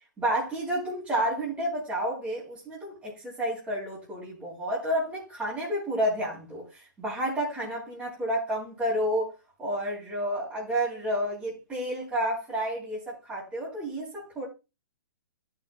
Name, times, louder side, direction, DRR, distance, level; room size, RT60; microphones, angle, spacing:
voice 1, 0.2-9.3 9.6-14.5, right 1 dB, 15° right, 4.5 m, -30 dB
16.0 x 6.6 x 2.5 m
hypercardioid pair, 125°, 10 cm